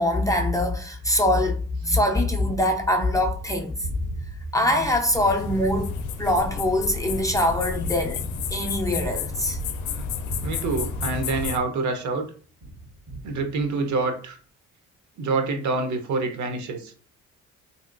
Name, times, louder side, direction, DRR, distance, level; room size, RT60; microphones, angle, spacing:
voice 1, 0.0-3.7 4.5-8.2 8.5-9.6, left 1 dB, 10° left, 0.4 m, -23 dB
Gunshot gunfire, 2.8-12.2 12.6-14.0, right 1 dB, 90° right, 1.5 m, -38 dB
sound 1, 5.1-11.6, left 6 dB, 75° left, 0.5 m, -31 dB
voice 2, 10.4-12.2 13.2-14.4 15.2-16.9, right 3 dB, 70° right, 0.7 m, -26 dB
2.8 x 2.7 x 2.5 m
cardioid pair, 90°, 30 cm